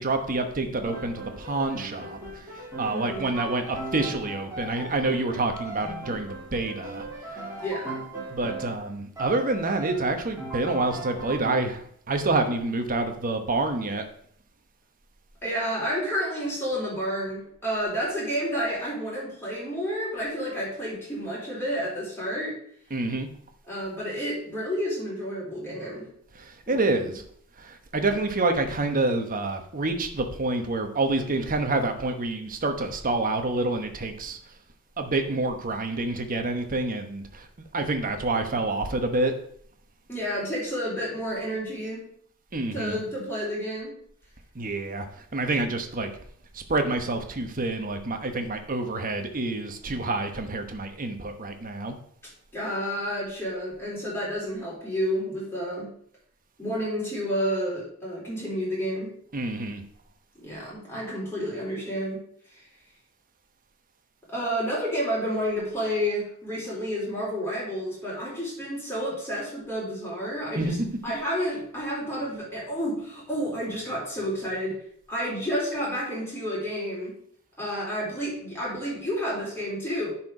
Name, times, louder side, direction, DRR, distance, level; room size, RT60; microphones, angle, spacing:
voice 1, 0.0-2.4 2.8-7.5 8.3-14.0 22.9-23.3 26.4-27.2 27.6-34.4 35.0-37.5 37.7-39.3 42.5-43.0 44.5-46.1 46.5-51.9 59.3-59.8 70.6-70.7, right 2 dB, 40° right, 6 dB, 1.1 m, -27 dB
Piano, 0.8-8.9 9.1-11.5, right 2 dB, 15° right, 2.8 m, -38 dB
voice 2, 2.8-3.4 7.6-8.1 15.4-22.6 23.7-26.1 26.7-27.1 40.1-42.1 42.7-43.9 52.5-55.9 56.6-59.1 60.4-62.2 62.5-62.6 64.3-70.8 71.0-74.8 75.1-77.1 77.6-80.1, equal, 10° left, -6 dB, 4.1 m, -30 dB
10.5 x 4.5 x 4.9 m, 0.64 s
head